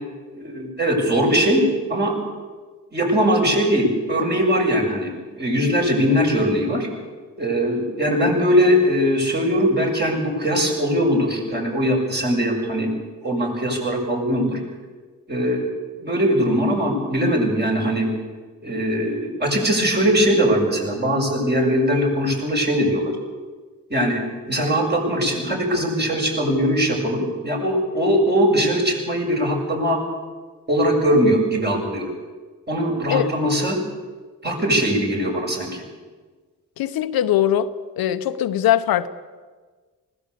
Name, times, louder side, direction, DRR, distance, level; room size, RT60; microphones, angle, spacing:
voice 1, 0.3-1.6 1.9-2.1 2.9-6.9 7.4-12.9 13.2-14.6 15.3-15.7 16.0-18.1 18.6-23.1 23.9-24.2 24.5-30.0 30.7-32.1 32.7-33.8 34.4-35.8, equal, 30° right, 0 dB, 7.2 m, -20 dB
voice 2, 36.8-37.7 38.0-39.1, left 11 dB, 80° left, 11 dB, 0.9 m, -20 dB
20.0 x 16.5 x 8.5 m, 1.4 s
cardioid pair, 65°, 35 cm